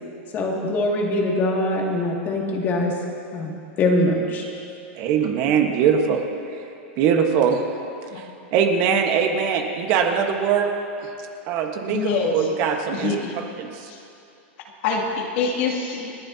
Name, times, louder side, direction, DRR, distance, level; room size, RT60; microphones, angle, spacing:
voice 1, 0.3-2.9 3.3-3.5 3.8-4.5, left 1 dB, 30° left, -1 dB, 2.3 m, -22 dB
voice 2, 5.0-6.2 7.0-7.6 8.1-10.7 11.5-13.1 13.6-13.9, right 7 dB, 45° right, 3 dB, 1.4 m, -21 dB
voice 3, 7.0-7.4 8.1-8.2 11.9-12.3 12.9-13.3 13.9-14.0 14.8-16.1, left 5 dB, 60° left, -1 dB, 2.6 m, -25 dB
29.5 x 11.0 x 2.9 m, 2.7 s
supercardioid pair, 150°, 7 cm